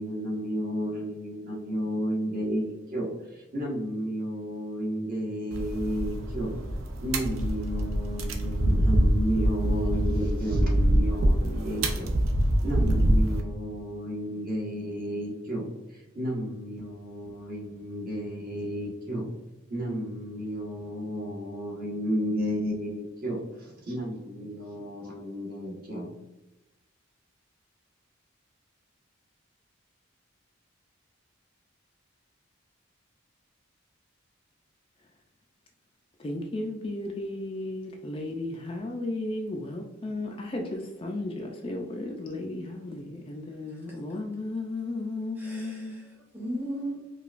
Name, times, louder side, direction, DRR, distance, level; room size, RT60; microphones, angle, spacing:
voice 1, 0.0-6.6 7.0-12.1 12.6-19.3 19.7-26.1, equal, 45° right, 1.1 m, -32 dB
sound 1, 5.5-13.4, right 1 dB, 85° right, 0.6 m, -25 dB
voice 2, 36.2-46.0, left 2 dB, 25° left, 0.3 m, -34 dB
voice 3, 45.4-47.2, right 1 dB, 10° right, 0.9 m, -37 dB
4.8 x 2.3 x 2.4 m
head